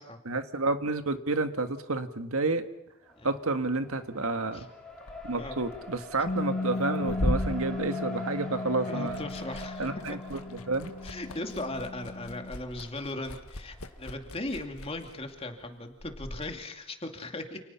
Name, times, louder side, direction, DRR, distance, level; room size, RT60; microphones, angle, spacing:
voice 1, 0.2-2.6 3.2-4.7 5.2-9.3 9.8-10.9, right 3 dB, 80° right, 8 dB, 1.7 m, -30 dB
Race car auto racing, 3.1-14.1, left 1 dB, 5° left, 4.9 m, -44 dB
Liquid, 4.9-8.6 8.9-16.5, left 1 dB, 85° left, 1.7 m, -38 dB
Bass guitar, 6.3-12.5, left 2 dB, 55° left, 1.4 m, -36 dB
voice 2, 8.8-10.2 11.0-17.6, left 2 dB, 25° left, 4 dB, 2.5 m, -38 dB
29.5 x 28.5 x 5.8 m, 0.87 s
head